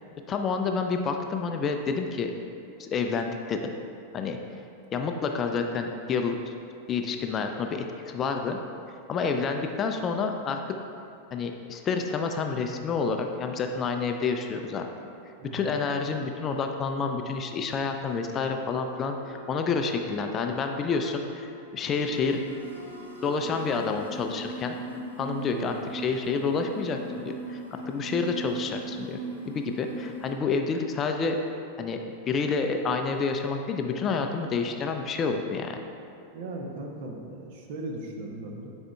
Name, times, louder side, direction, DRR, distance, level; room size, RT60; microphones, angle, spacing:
voice 1, 0.3-2.3 2.8-3.7 4.1-4.4 4.9-6.5 6.9-8.6 9.1-10.6 11.3-14.9 15.5-22.4 23.2-24.8 25.2-29.2 29.5-31.4 31.8-35.8, left 5 dB, 25° left, 5 dB, 0.4 m, -29 dB
voice 2, 15.4-15.7 25.5-25.7 26.0-26.3 36.3-38.7, right 2 dB, 50° right, 2 dB, 0.8 m, -38 dB
Wind instrument woodwind instrument, 19.1-24.0, left 1 dB, 85° right, 1.2 m, -45 dB
sound 1, 21.9-30.3, right 3 dB, 80° left, 0.9 m, -39 dB
9.9 x 4.4 x 2.3 m, 2.6 s
figure-of-eight pair, 90°, 0 cm